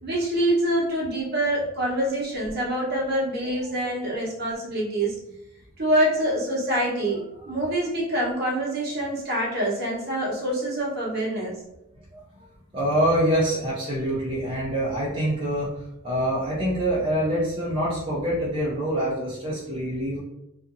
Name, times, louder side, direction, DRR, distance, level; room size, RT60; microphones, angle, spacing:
voice 1, 0.0-5.2 5.8-11.6, right 1 dB, 50° right, -4 dB, 0.9 m, -25 dB
voice 2, 12.7-15.7 16.0-20.2, right 1 dB, 25° right, -8 dB, 0.6 m, -25 dB
2.7 x 2.5 x 2.5 m, 0.86 s
head